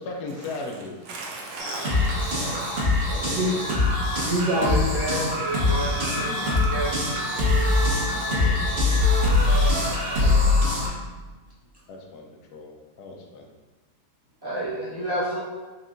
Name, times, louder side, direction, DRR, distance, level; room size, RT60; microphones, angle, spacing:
voice 1, 0.0-1.1 2.3-2.6 3.1-3.5 5.9-6.7 8.0-9.7 10.1-10.6 11.9-13.5, left 3 dB, 75° left, 1 dB, 1.1 m, -39 dB
voice 2, 1.1-4.8 5.5-5.6 6.4-6.8, equal, 75° right, -1 dB, 1.2 m, -31 dB
sound 1, 1.6-10.9, left 2 dB, 45° right, 1.0 m, -23 dB
Wind instrument woodwind instrument, 3.6-10.0 10.3-10.9, left 3 dB, 40° left, 0.4 m, -38 dB
voice 3, 4.5-6.9 14.4-15.4, right 1 dB, 20° right, -8 dB, 0.7 m, -30 dB
4.4 x 3.2 x 2.5 m, 1.2 s
omnidirectional pair, 1.7 m